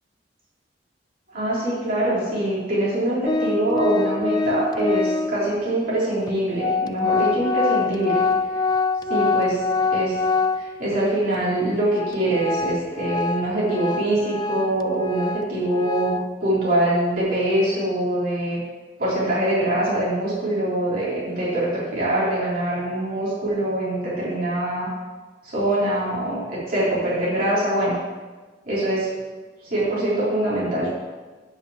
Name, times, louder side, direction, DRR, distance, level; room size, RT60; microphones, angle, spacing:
voice 1, 1.3-8.2 9.1-9.6 9.9-10.2 10.6-18.6 19.0-24.9 25.4-27.9 28.7-29.1 29.7-30.9, right 1 dB, 55° right, -8 dB, 3.8 m, -23 dB
Organ, 3.3-5.5 6.3-6.4 6.6-11.0 11.3-11.4 11.9-16.3, left 4 dB, 25° left, 0.3 m, -25 dB
9.5 x 5.4 x 7.4 m, 1.3 s
head